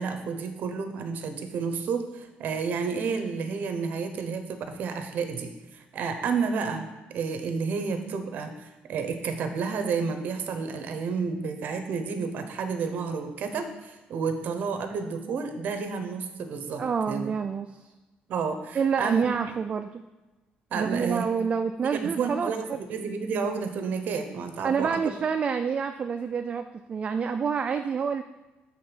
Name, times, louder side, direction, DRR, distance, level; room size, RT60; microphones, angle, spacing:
voice 1, 0.0-17.3 18.3-19.3 20.7-21.2 21.8-25.0, right 5 dB, 55° right, 7 dB, 0.8 m, -31 dB
voice 2, 16.8-17.9 18.7-20.0 20.7-22.8 24.6-28.2, right 6 dB, 30° right, 7 dB, 0.3 m, -28 dB
7.4 x 3.6 x 6.1 m, 1.1 s
cardioid pair, 145°, 3 cm